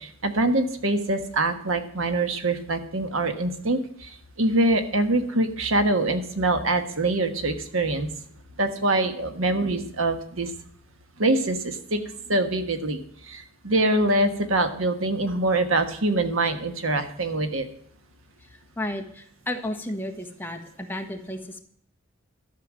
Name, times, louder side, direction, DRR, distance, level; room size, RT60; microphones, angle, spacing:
voice 1, 0.0-8.1 8.6-10.5 11.2-12.0 12.3-17.7, right 2 dB, 75° right, 7 dB, 1.4 m, -24 dB
voice 2, 18.5-21.6, left 1 dB, 10° left, 3 dB, 1.3 m, -33 dB
12.5 x 6.7 x 7.5 m, 0.64 s
head